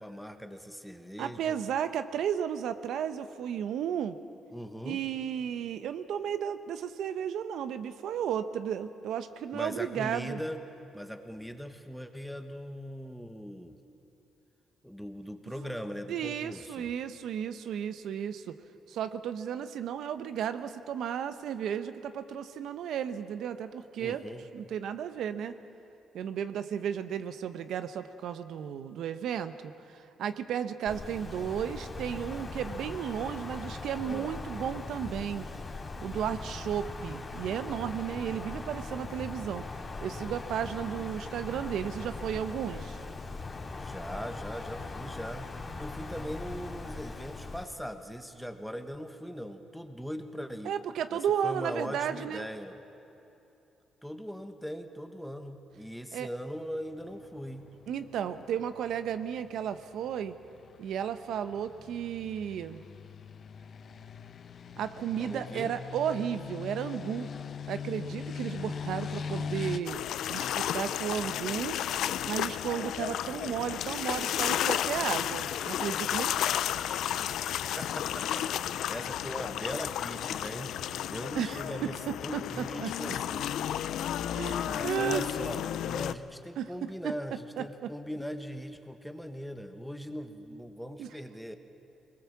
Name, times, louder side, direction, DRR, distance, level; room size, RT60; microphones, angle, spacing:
voice 1, 0.0-1.6 4.5-5.0 9.5-10.6 10.9-13.8 14.8-16.9 24.0-24.4 34.0-34.3 43.8-45.5 45.8-50.7 51.1-52.7 54.0-57.6 65.2-65.8 77.8-80.8 81.1-83.6 84.7-91.5, equal, ahead, 6 dB, 1.4 m, -40 dB
voice 2, 1.2-4.2 4.8-10.4 15.6-15.7 16.1-18.5 18.9-24.2 24.5-25.6 26.1-35.5 36.0-39.6 40.0-43.0 50.6-52.5 56.1-56.3 57.9-60.3 60.8-62.8 64.8-67.3 67.7-70.0 70.3-71.8 72.3-76.5 81.4-81.9 82.3-83.2 84.3-85.3 86.6-87.1 87.6-87.9 91.0-91.1, right 9 dB, 75° right, 11 dB, 0.9 m, -34 dB
Wind, 30.9-47.6, left 3 dB, 35° left, 2.7 m, -40 dB
sound 1, 56.9-69.8, left 6 dB, 55° left, 0.9 m, -41 dB
sound 2, 69.9-86.1, left 11 dB, 80° left, 0.5 m, -32 dB
22.5 x 20.0 x 7.3 m, 2.9 s
cardioid pair, 90°, 0 cm